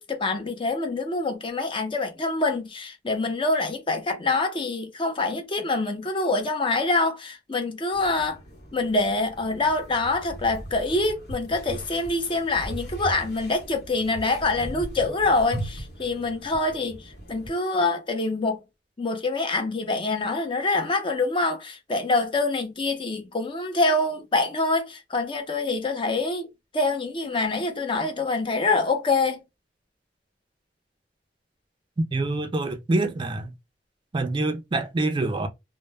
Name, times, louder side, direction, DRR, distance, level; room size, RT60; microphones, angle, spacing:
voice 1, 0.0-8.4 8.7-18.6 19.0-26.5 26.7-29.4, left 3 dB, 30° left, 0.5 m, -25 dB
sound 1, 7.9-17.5, right 1 dB, 65° left, 1.1 m, -39 dB
voice 2, 32.0-33.5 34.1-35.5, right 2 dB, 25° right, 0.3 m, -26 dB
2.1 x 2.0 x 3.2 m
head